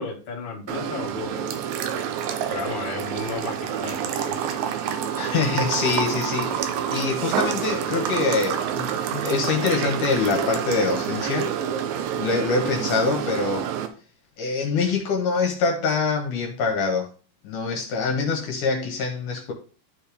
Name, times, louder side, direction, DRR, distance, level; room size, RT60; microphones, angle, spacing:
voice 1, 0.0-1.6 2.5-4.4, left 3 dB, 35° left, 2.3 m, -33 dB
sound 1, 0.7-13.9, right 8 dB, 85° right, 2.6 m, -28 dB
voice 2, 5.2-11.5 12.2-13.7 14.4-17.1 17.4-19.5, left 4 dB, 70° left, 2.7 m, -25 dB
12.5 x 4.4 x 3.5 m
omnidirectional pair, 4.0 m